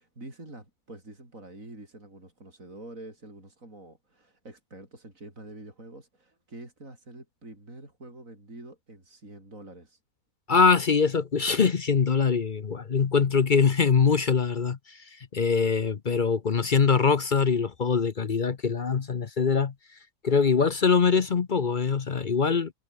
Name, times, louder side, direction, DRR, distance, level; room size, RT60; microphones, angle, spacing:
voice 1, 0.0-10.0, right 2 dB, 55° right, 7.1 m, -46 dB
voice 2, 10.5-15.0 15.3-19.7 20.2-22.7, left 5 dB, 40° left, 0.8 m, -23 dB
omnidirectional pair, 1.6 m